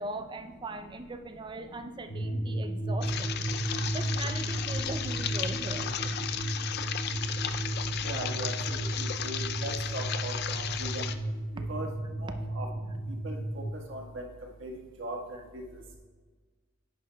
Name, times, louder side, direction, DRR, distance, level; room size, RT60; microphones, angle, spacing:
voice 1, 0.0-3.4 3.9-5.9, right 2 dB, 20° right, 8 dB, 0.4 m, -40 dB
sound 1, 2.1-13.7, right 1 dB, 75° left, 1.5 m, -34 dB
sound 2, 3.0-11.2, left 9 dB, 50° left, 0.4 m, -35 dB
voice 2, 8.0-11.0 11.7-11.9 12.2-12.7 13.2-13.4 13.9-14.2 14.6-15.2 15.5-15.6, right 2 dB, 60° right, 0 dB, 1.4 m, -39 dB
10.5 x 10.0 x 2.2 m, 1.4 s
head